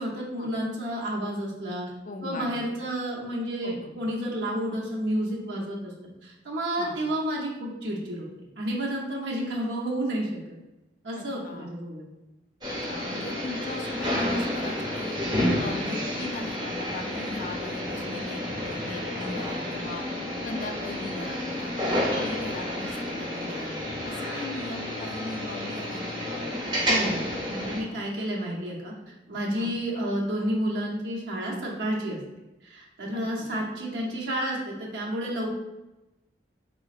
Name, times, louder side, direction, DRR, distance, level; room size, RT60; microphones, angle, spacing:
voice 1, 0.0-1.8 2.2-5.9 6.2-8.3 8.6-10.3 11.0-12.0 26.8-32.2 32.6-35.5, equal, 75° right, -3 dB, 0.7 m, -30 dB
voice 2, 2.1-2.5 3.6-3.9 6.8-7.0 11.2-11.7 12.7-15.2 15.6-20.1 20.4-23.7 24.0-26.6 27.9-28.0 29.6-29.7 33.1-33.5, left 2 dB, 45° left, 3 dB, 0.3 m, -39 dB
sound 1, 12.6-27.8, left 1 dB, 25° right, 0.8 m, -30 dB
3.7 x 3.0 x 2.4 m, 0.99 s
head